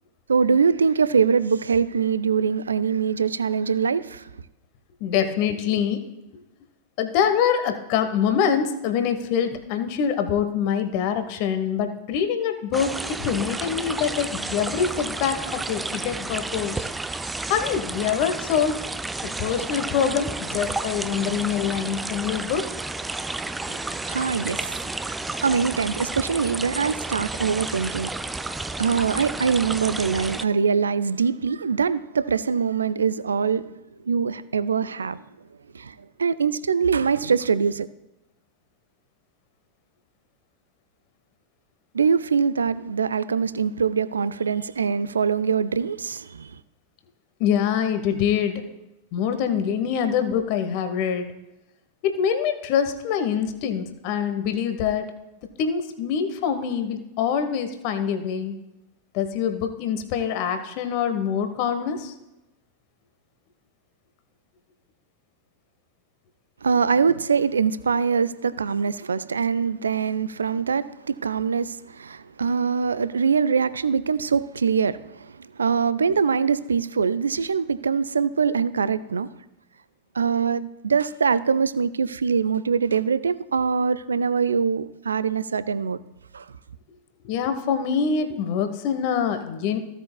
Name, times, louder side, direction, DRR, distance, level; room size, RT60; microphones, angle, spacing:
voice 1, 0.3-4.3 24.0-28.1 28.4-33.7 34.0-35.2 35.7-37.9 41.9-46.6 66.6-79.3 80.1-86.0 86.3-86.5, right 6 dB, 70° right, 0.4 m, -23 dB
voice 2, 5.0-6.0 7.0-16.9 17.5-18.8 19.2-22.7 47.4-48.6 49.1-51.3 52.0-55.1 55.6-58.6 59.1-62.1 87.2-89.8, left 7 dB, 45° left, 1.0 m, -25 dB
sound 1, 12.7-30.4, right 2 dB, 10° right, 0.4 m, -31 dB
15.5 x 8.1 x 2.3 m
figure-of-eight pair, 90°, 0 cm